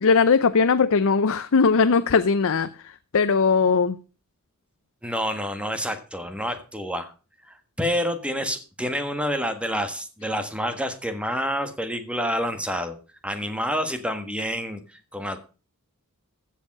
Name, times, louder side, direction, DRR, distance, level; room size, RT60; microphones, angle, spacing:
voice 1, 0.0-2.7 3.1-4.0, left 5 dB, 65° left, 0.6 m, -19 dB
voice 2, 5.0-7.1 7.4-13.0 13.2-15.4, equal, 5° right, 1.5 m, -28 dB
15.0 x 7.3 x 5.4 m
head